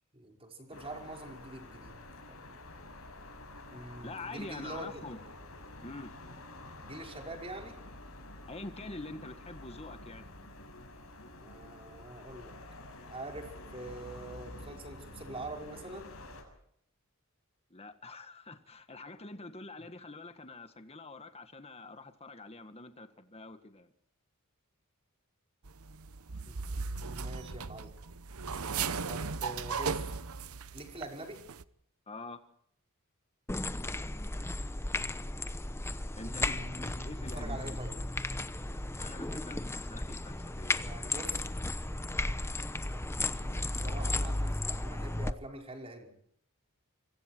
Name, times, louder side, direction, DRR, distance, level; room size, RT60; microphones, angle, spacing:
voice 1, 0.1-1.9 2.3-2.4 3.7-5.0 6.8-7.8 11.4-12.5 13.1-16.1 26.4-27.9 29.1-30.1 30.7-31.4 36.2-37.1 37.4-38.0 40.8-41.5 42.8-46.1, right 2 dB, 25° right, 3 dB, 5.3 m, -45 dB
sound 1, 0.7-16.4, left 2 dB, 70° left, 7.1 m, -49 dB
voice 2, 4.0-5.2 5.8-6.1 8.5-10.3 17.7-23.9 32.1-32.4 36.2-37.8 39.0-40.8, left 2 dB, 30° left, 8 dB, 1.6 m, -45 dB
sound 2, 25.6-31.1 31.3-31.6, right 5 dB, 80° right, 1.0 m, -37 dB
sound 3, 33.5-45.3, left 2 dB, 10° left, 0.8 m, -35 dB
26.0 x 25.0 x 4.6 m, 0.69 s
head